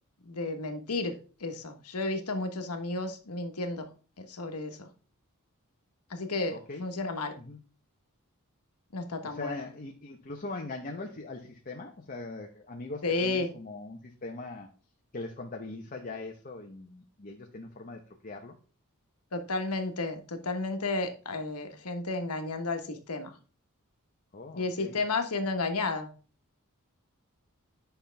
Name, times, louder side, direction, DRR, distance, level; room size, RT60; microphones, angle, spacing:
voice 1, 0.2-1.1 1.4-3.9 4.2-4.9 6.1-7.3 8.9-9.6 13.0-13.5 19.3-23.3 24.5-26.1, left 3 dB, 85° left, 6 dB, 1.3 m, -32 dB
voice 2, 6.5-6.9 7.4-7.6 9.2-14.7 15.1-18.5 24.3-25.0, left 2 dB, 40° left, 2 dB, 0.9 m, -41 dB
9.8 x 5.7 x 3.4 m, 0.38 s
head